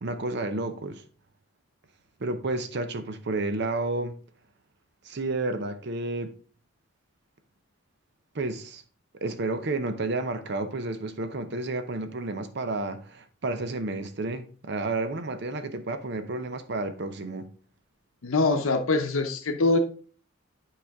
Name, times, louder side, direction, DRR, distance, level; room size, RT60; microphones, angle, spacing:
voice 1, 0.0-1.0 2.2-4.1 5.0-6.3 8.3-8.8 9.2-17.5, right 2 dB, 55° right, 0.6 m, -31 dB
voice 2, 18.2-19.8, left 3 dB, 85° left, 0.7 m, -23 dB
8.9 x 4.9 x 3.5 m
head